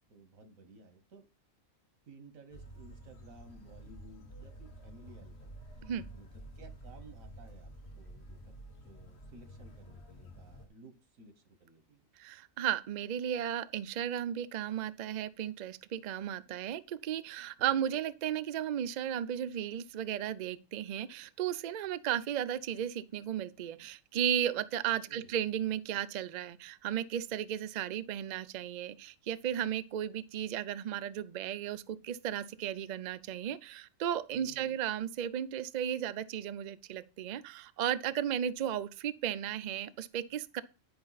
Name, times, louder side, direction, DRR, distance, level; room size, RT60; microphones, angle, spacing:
voice 1, 0.1-1.3 2.1-5.9 6.1-8.5 8.8-12.1 17.6-17.8 25.1-25.3 34.3-34.8, right 3 dB, 90° right, 1.5 m, -56 dB
sound 1, 2.5-10.7, right 1 dB, 55° left, 1.4 m, -50 dB
voice 2, 12.2-40.6, right 10 dB, 65° right, 0.4 m, -35 dB
10.5 x 5.1 x 4.0 m
omnidirectional pair, 1.4 m